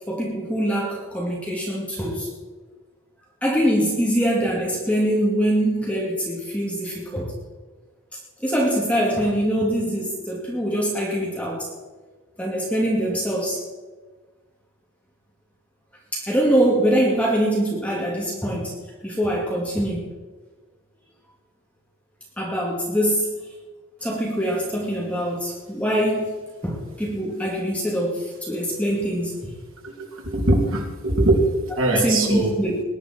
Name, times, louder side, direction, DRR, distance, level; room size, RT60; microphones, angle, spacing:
voice 1, 0.1-2.3 3.4-7.3 8.4-11.7 12.4-13.6 16.1-18.8 19.0-20.2 22.4-23.3 24.0-26.3 26.6-29.5 31.9-32.8, equal, 5° left, -3 dB, 2.3 m, -23 dB
voice 2, 30.2-31.5 31.8-32.5, right 2 dB, 75° right, -1 dB, 3.0 m, -20 dB
20.5 x 10.5 x 4.4 m, 1.3 s
head